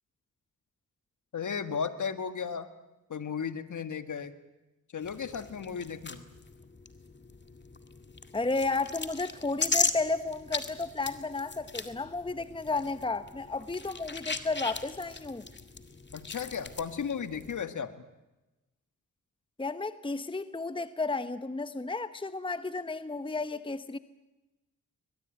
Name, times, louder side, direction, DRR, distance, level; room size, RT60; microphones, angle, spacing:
voice 1, 1.3-2.7 3.1-4.3 4.9-6.2 16.1-17.9, left 6 dB, 60° left, 1.8 m, -35 dB
sound 1, 5.0-17.6, left 4 dB, 30° left, 2.0 m, -38 dB
voice 2, 8.3-15.5 19.6-24.0, left 3 dB, 15° left, 1.0 m, -33 dB
22.0 x 21.5 x 9.2 m
cardioid pair, 60°, 33 cm